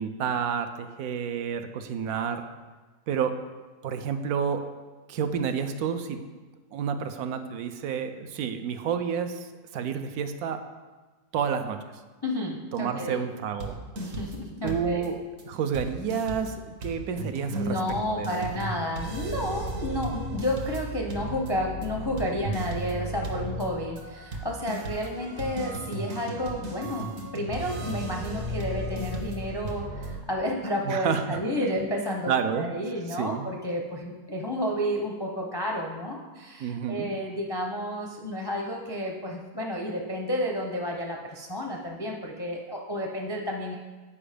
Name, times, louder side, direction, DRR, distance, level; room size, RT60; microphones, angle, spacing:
voice 1, 0.0-2.4 3.1-3.4 3.8-4.6 5.1-6.2 6.7-9.5 9.7-10.6 11.3-11.8 12.7-13.8 14.6-17.8 18.1-18.5 30.9-31.7 32.3-32.7 33.2-33.5 36.6-37.1, right 7 dB, 80° right, 8 dB, 1.1 m, -29 dB
voice 2, 12.2-13.2 14.0-15.0 17.5-32.3 32.6-43.8, equal, 35° left, 0 dB, 0.4 m, -31 dB
sound 1, 13.6-14.4 14.7-15.1 15.4-15.5 15.7-30.1, right 1 dB, 60° right, 1.4 m, -35 dB
8.6 x 4.9 x 5.0 m, 1.3 s
omnidirectional pair, 1.6 m